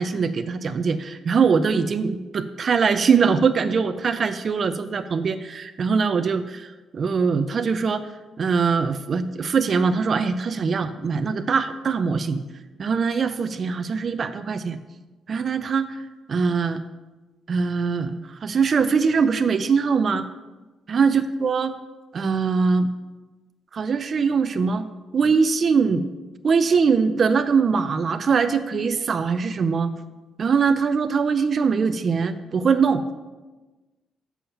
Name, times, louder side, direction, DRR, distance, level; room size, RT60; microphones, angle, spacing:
voice 1, 0.0-8.0 8.4-12.4 12.8-14.8 15.3-16.0 16.3-16.8 17.5-20.3 20.9-21.7 22.1-22.9 23.7-24.9 25.1-26.0 26.4-29.9 30.4-33.0, right 5 dB, 45° right, 10 dB, 0.5 m, -22 dB
7.1 x 7.1 x 5.7 m, 1.2 s
cardioid pair, 90°, 0 cm